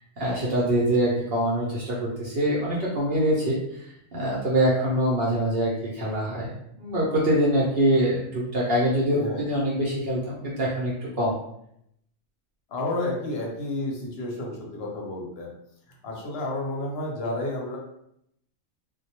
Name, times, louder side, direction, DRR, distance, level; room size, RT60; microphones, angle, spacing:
voice 1, 0.2-3.6 4.1-6.5 6.8-11.4, right 1 dB, 60° right, -5 dB, 0.7 m, -24 dB
voice 2, 12.7-15.5 16.0-17.8, left 2 dB, 60° left, -2 dB, 0.8 m, -31 dB
2.2 x 2.1 x 2.8 m, 0.75 s
omnidirectional pair, 1.4 m